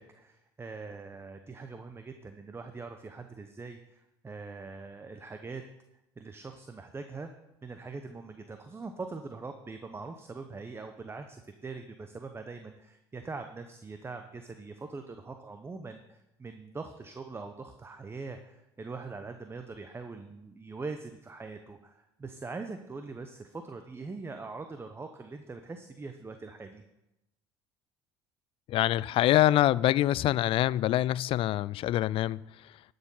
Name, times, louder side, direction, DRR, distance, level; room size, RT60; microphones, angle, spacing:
voice 1, 0.0-5.6 6.2-7.3 7.6-26.8, right 4 dB, 20° right, 0.8 m, -42 dB
voice 2, 28.7-32.8, left 14 dB, 50° left, 0.3 m, -25 dB
11.5 x 6.7 x 5.6 m
hypercardioid pair, 70°, 12 cm